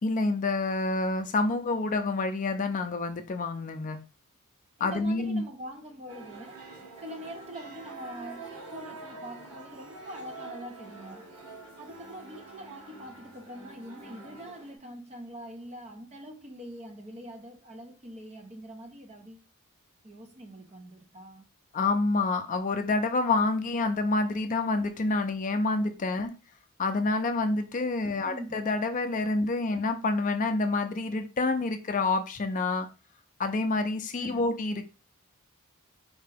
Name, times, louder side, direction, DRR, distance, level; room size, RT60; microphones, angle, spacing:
voice 1, 0.0-4.0 4.8-5.4 21.7-26.3 26.8-32.9 33.4-34.9, left 3 dB, 35° left, 0.4 m, -28 dB
voice 2, 4.8-6.6 7.0-11.3 11.8-19.5 20.0-21.4 26.3-26.4 28.2-28.6 34.1-34.5, equal, 30° right, 0.7 m, -44 dB
sound 1, 6.1-14.7, right 3 dB, 75° right, 1.4 m, -46 dB
4.4 x 2.8 x 3.3 m
head